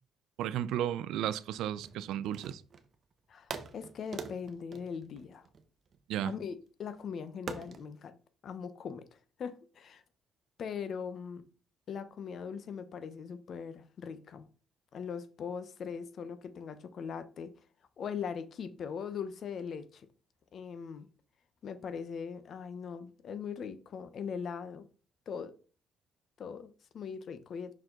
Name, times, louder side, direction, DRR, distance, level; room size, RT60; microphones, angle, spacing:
voice 1, 0.4-2.6 6.1-6.3, right 11 dB, 90° right, 0.4 m, -33 dB
sound 1, 1.8-2.9 3.5-6.0 7.5-7.9, right 5 dB, 50° right, 1.0 m, -44 dB
voice 2, 3.3-5.5 6.2-8.2 8.4-10.0 10.6-11.4 11.9-14.5 14.9-17.5 18.0-20.1 20.5-21.1 21.6-24.8 25.3-25.5 26.4-27.7, left 6 dB, 60° left, 0.9 m, -40 dB
5.9 x 4.8 x 3.8 m
cardioid pair, 90°, 0 cm